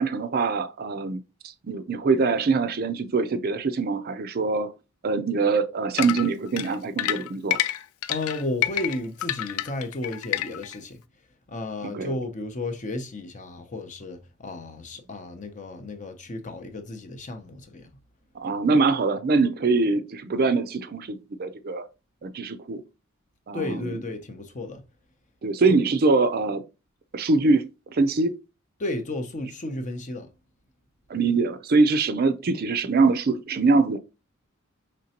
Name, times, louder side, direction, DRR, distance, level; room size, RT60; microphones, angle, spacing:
voice 1, 0.0-4.7 5.0-7.6 11.8-12.1 18.3-21.9 22.2-22.8 23.5-24.0 25.4-26.6 27.1-28.4 31.1-34.0, right 3 dB, 45° right, 0.4 m, -23 dB
sound 1, 6.0-10.8, left 13 dB, 85° left, 0.4 m, -28 dB
voice 2, 8.1-11.0 11.5-17.9 23.5-24.8 28.8-30.3, left 2 dB, 35° left, 0.6 m, -33 dB
5.1 x 3.2 x 2.8 m
head